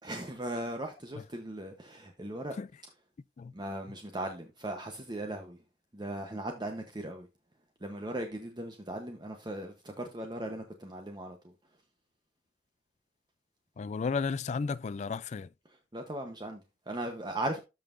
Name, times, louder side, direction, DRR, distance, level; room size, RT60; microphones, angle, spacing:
voice 1, 0.0-2.6 3.5-5.6 5.9-7.3 7.8-11.4 15.9-17.6, right 1 dB, 25° right, 0.9 m, -38 dB
voice 2, 13.8-15.5, left 5 dB, 40° left, 0.3 m, -33 dB
13.0 x 5.5 x 2.5 m
head